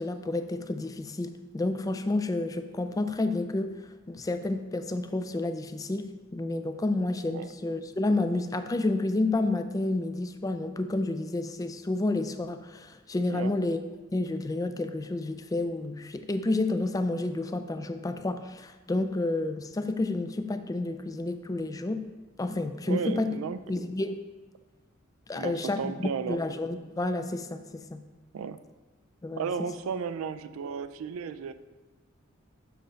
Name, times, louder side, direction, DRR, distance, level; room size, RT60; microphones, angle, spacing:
voice 1, 0.0-3.7 4.1-13.8 14.1-22.0 22.4-23.3 23.7-24.2 25.3-28.0 29.2-29.5, left 2 dB, 15° left, 9 dB, 0.3 m, -30 dB
voice 2, 22.9-23.6 25.3-26.4 28.3-28.6 29.4-31.5, right 6 dB, 85° right, 12 dB, 0.4 m, -34 dB
6.8 x 6.2 x 3.2 m, 1.2 s
head